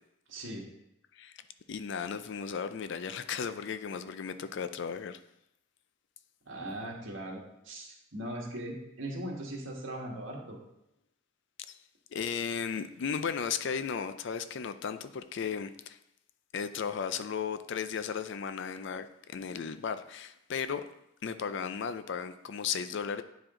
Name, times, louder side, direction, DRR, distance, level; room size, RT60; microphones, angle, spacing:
voice 1, 0.3-0.6 6.4-10.6, right 1 dB, 65° right, -1 dB, 1.7 m, -39 dB
voice 2, 1.7-5.2 12.1-16.0 16.5-20.8 21.2-23.2, left 6 dB, 60° left, 11 dB, 0.4 m, -35 dB
9.1 x 4.9 x 3.7 m, 0.82 s
head